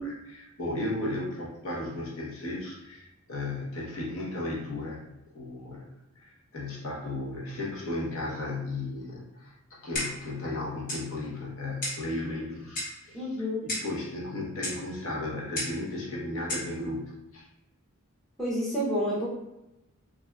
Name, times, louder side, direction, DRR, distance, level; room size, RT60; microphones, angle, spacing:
voice 1, 0.0-5.9 6.2-17.5, left 2 dB, 70° left, -4 dB, 0.8 m, -35 dB
Clock, 10.0-10.3 10.9-11.1 11.8-12.1 12.8-13.0 13.7-14.0 14.6-14.8 15.6-15.8 16.5-16.7, left 1 dB, 40° left, 0.8 m, -33 dB
voice 2, 13.1-13.7 18.4-19.3, equal, ahead, -8 dB, 0.5 m, -29 dB
3.4 x 2.5 x 2.2 m, 0.94 s
head